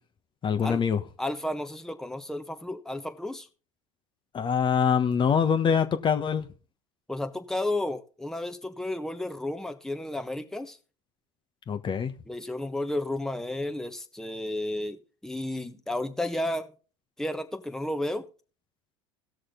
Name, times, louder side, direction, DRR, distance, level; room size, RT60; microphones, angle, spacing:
voice 1, 0.4-1.0 4.3-6.5 11.7-12.1, left 7 dB, 30° left, 1.2 m, -24 dB
voice 2, 1.2-3.5 7.1-10.8 12.3-16.7 17.2-18.2, left 1 dB, 5° left, 1.2 m, -32 dB
17.5 x 6.4 x 3.9 m
hypercardioid pair, 85°, 16 cm